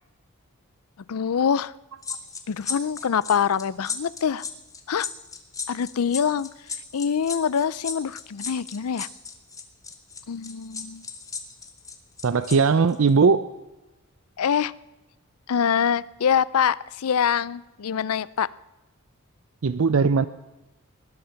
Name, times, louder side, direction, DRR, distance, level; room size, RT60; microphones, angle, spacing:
voice 1, 1.1-1.7 2.5-4.4 4.9-5.1 5.7-6.5 6.9-9.1 10.3-11.0 14.4-14.7 15.5-18.5, left 7 dB, 85° left, 19 dB, 0.5 m, -24 dB
sound 1, 2.0-12.6 12.9-13.1, left 5 dB, 15° left, 1.6 m, -35 dB
voice 2, 12.2-13.5 19.6-20.3, right 5 dB, 65° right, 14 dB, 0.5 m, -19 dB
19.5 x 12.0 x 5.8 m, 1.0 s
head